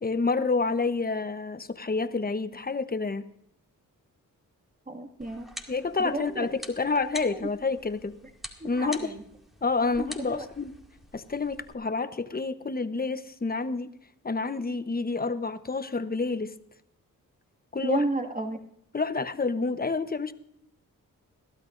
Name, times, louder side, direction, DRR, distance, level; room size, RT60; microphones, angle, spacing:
voice 1, 0.0-3.2 5.7-8.2 8.6-9.1 9.6-10.7 11.1-13.9 14.2-16.5 17.7-18.1 18.9-20.3, left 4 dB, 25° left, 11 dB, 1.0 m, -28 dB
voice 2, 4.9-5.5 6.0-6.5 7.3-7.4 8.8-9.2 10.0-10.4 17.8-18.6, right 2 dB, 25° right, 4 dB, 2.1 m, -32 dB
sound 1, 5.2-11.7, equal, ahead, 2.2 m, -45 dB
21.5 x 13.0 x 2.6 m, 0.72 s
cardioid pair, 50°, 35 cm